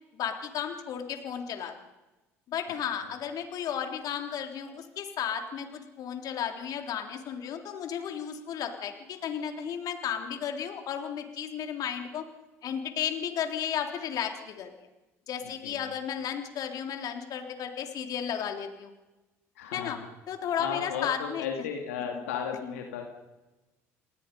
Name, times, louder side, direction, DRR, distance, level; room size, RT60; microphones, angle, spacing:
voice 1, 0.1-1.7 2.5-12.2 12.6-14.7 15.3-18.9 19.7-20.0 20.3-21.5 22.6-22.7, left 8 dB, 60° left, 5 dB, 3.5 m, -34 dB
voice 2, 15.4-15.9 19.6-20.1 20.6-23.1, left 7 dB, 85° left, 2 dB, 2.6 m, -35 dB
29.5 x 19.5 x 5.5 m, 1.1 s
hypercardioid pair, 65°, 7 cm